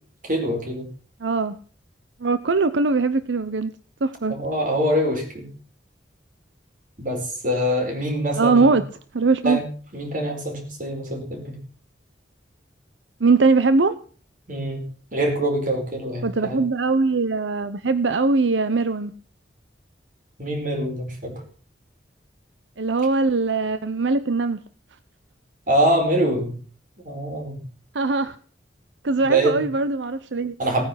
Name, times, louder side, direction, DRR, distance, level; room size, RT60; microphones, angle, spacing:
voice 1, 0.2-0.9 4.3-5.5 7.0-8.8 9.4-9.6 9.9-11.6 14.5-14.8 15.1-16.6 20.4-21.4 25.7-26.6 27.0-27.6 29.2-29.6 30.6-30.9, right 1 dB, 50° right, 3 dB, 4.9 m, -24 dB
voice 2, 1.2-1.6 2.2-3.7 4.0-4.3 8.4-8.8 9.1-9.6 13.2-13.9 16.2-19.1 22.8-24.6 27.9-28.4 29.0-30.6, right 3 dB, 85° right, 12 dB, 0.7 m, -21 dB
17.0 x 9.6 x 5.8 m, 0.43 s
head